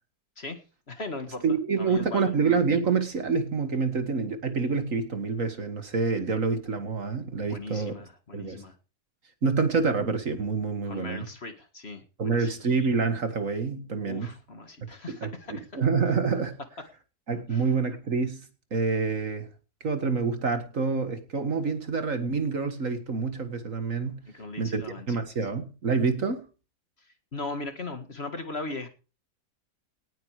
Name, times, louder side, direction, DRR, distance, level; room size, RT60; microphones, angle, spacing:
voice 1, 0.9-2.3 7.5-8.8 10.8-12.5 14.0-15.7 16.8-16.9 17.5-17.7 24.3-25.1 27.0-28.9, left 2 dB, 40° left, 1.9 m, -38 dB
voice 2, 1.4-7.9 8.3-8.6 9.4-11.3 12.2-14.3 15.1-16.6 17.3-18.4 18.7-19.5 19.8-24.2 24.6-26.5, right 4 dB, 50° right, 2.0 m, -27 dB
19.0 x 8.9 x 4.9 m
omnidirectional pair, 1.8 m